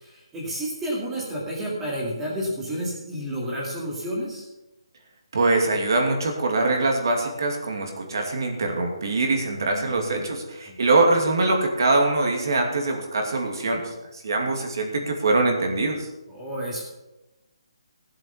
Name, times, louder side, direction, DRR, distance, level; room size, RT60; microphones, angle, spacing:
voice 1, 0.0-4.4 9.4-10.3 10.7-10.8 16.3-16.8, equal, 5° right, -5 dB, 2.3 m, -31 dB
voice 2, 5.3-16.1, right 2 dB, 45° right, 2 dB, 2.5 m, -23 dB
17.0 x 7.7 x 5.7 m, 1.0 s
hypercardioid pair, 180°, 3 cm